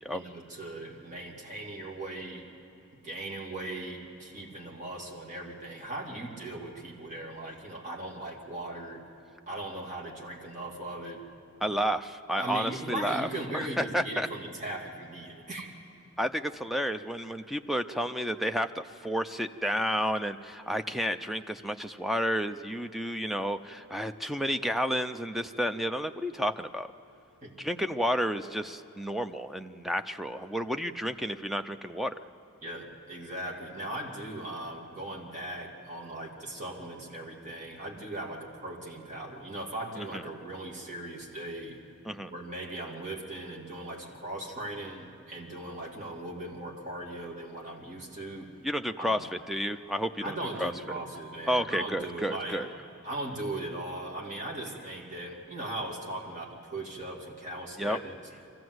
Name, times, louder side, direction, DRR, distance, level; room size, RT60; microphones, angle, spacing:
voice 1, 0.1-2.5 3.0-9.0 9.5-11.2 12.4-15.7 27.4-27.5 32.6-41.8 42.3-48.6 49.0-49.3 50.2-52.7 53.0-58.2, right 1 dB, 35° right, -1 dB, 2.5 m, -38 dB
voice 2, 11.6-13.3 13.5-14.3 16.2-26.9 27.6-32.1 40.0-40.2 42.1-42.3 48.6-50.7 51.5-52.7 57.8-58.0, equal, ahead, 8 dB, 0.5 m, -31 dB
24.0 x 15.0 x 7.9 m, 2.8 s
head